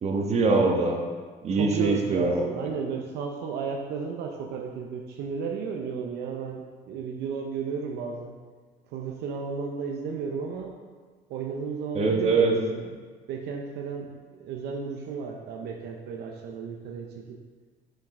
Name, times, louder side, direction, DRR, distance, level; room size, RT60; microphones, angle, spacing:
voice 1, 0.0-1.0 1.4-2.4 11.9-12.6, right 3 dB, 40° right, 1 dB, 1.1 m, -23 dB
voice 2, 1.5-8.4 8.9-10.7 11.3-13.0 13.3-17.4, right 5 dB, 75° right, 2 dB, 0.7 m, -34 dB
7.3 x 5.5 x 3.7 m, 1.5 s
cardioid pair, 110°, 17 cm